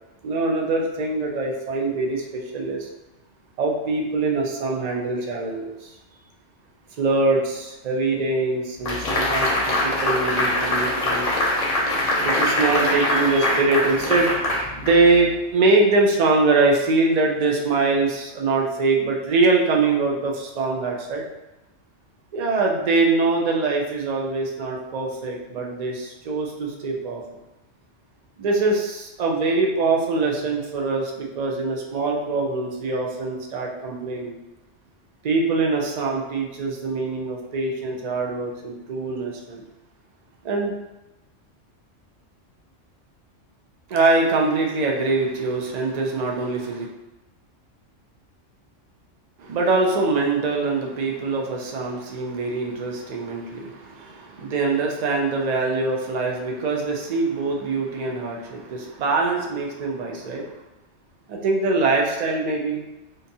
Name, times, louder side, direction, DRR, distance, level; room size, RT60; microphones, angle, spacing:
voice 1, 0.2-2.9 3.6-5.9 6.9-11.3 12.2-14.4 14.8-21.3 22.3-27.2 28.4-34.4 35.2-39.6 40.4-40.7 43.9-46.9 49.4-60.5 61.3-62.8, right 3 dB, 60° right, 0 dB, 0.4 m, -23 dB
sound 1, 8.9-15.3, left 1 dB, 45° left, 0.6 m, -23 dB
3.7 x 2.6 x 2.7 m, 1.0 s
omnidirectional pair, 1.3 m